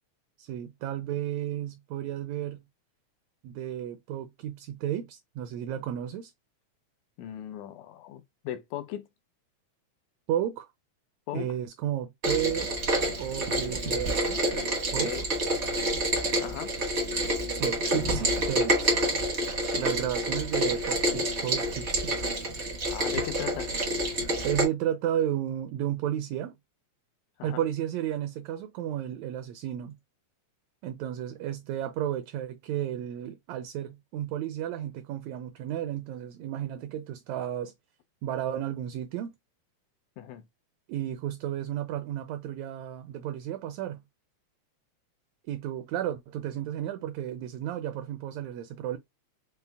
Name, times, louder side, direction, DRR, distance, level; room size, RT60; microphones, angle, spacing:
voice 1, 0.4-2.6 3.4-6.3 10.3-10.7 11.3-12.7 13.2-14.4 14.9-15.1 17.6-18.9 19.8-22.2 24.4-26.6 27.4-30.0 30.8-37.7 38.2-39.4 40.9-44.0 45.5-49.0, right 11 dB, 80° right, 1.7 m, -33 dB
voice 2, 7.2-9.1 11.3-11.5 15.0-15.2 16.4-16.7 22.9-23.7 27.4-27.6 40.2-40.4, left 11 dB, 80° left, 1.9 m, -37 dB
Rain, 12.2-24.6, right 1 dB, 50° right, 0.7 m, -28 dB
5.6 x 2.1 x 3.3 m
omnidirectional pair, 3.4 m